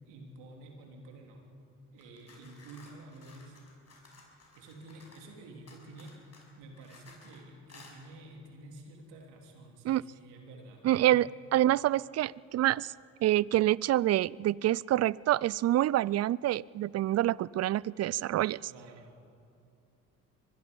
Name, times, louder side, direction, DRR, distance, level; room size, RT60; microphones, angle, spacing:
voice 1, 0.1-1.4 1.9-3.6 4.6-6.2 6.6-11.3 18.7-19.1, right 2 dB, 75° right, 1 dB, 3.5 m, -50 dB
sound 1, 2.0-5.3 5.7-7.4 7.7-8.0, left 3 dB, 35° left, 6.0 m, -56 dB
voice 2, 10.8-12.9 13.2-18.6, right 14 dB, 40° right, 24 dB, 0.4 m, -27 dB
23.5 x 21.0 x 5.4 m, 2.7 s
hypercardioid pair, 55°, 42 cm